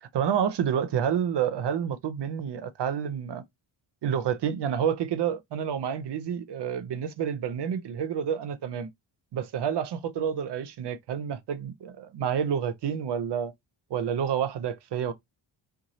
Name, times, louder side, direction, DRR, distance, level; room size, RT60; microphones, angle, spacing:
voice 1, 0.0-3.4 4.0-8.9 9.3-13.5 13.9-15.1, right 8 dB, 60° right, 0.6 m, -29 dB
3.0 x 2.3 x 2.7 m
wide cardioid pair, 120°, 48 cm